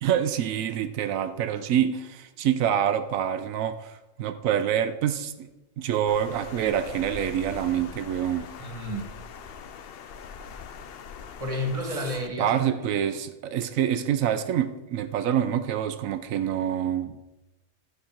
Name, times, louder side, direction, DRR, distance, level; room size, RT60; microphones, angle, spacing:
voice 1, 0.0-5.5 5.8-8.5 12.4-17.2, right 9 dB, 85° right, 1.0 m, -26 dB
Water, 6.1-12.3, left 6 dB, 60° left, 0.7 m, -42 dB
voice 2, 8.6-9.1 11.4-13.1, equal, 25° right, 1.7 m, -32 dB
11.5 x 5.6 x 5.8 m
omnidirectional pair, 1.4 m